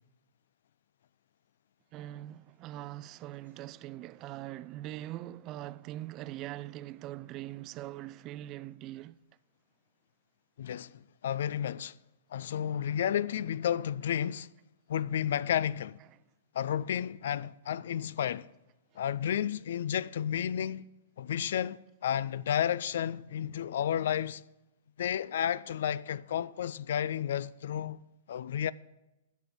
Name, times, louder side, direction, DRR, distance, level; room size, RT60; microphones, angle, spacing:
voice 1, 1.9-9.2, right 14 dB, 35° right, 0.3 m, -42 dB
voice 2, 10.6-10.9 11.2-11.9 12.3-14.5 14.9-16.0 16.5-18.5 19.0-20.9 21.2-24.4 25.0-28.0 28.3-28.7, left 9 dB, 65° left, 0.3 m, -32 dB
10.5 x 6.2 x 7.8 m
hypercardioid pair, 110°, 0 cm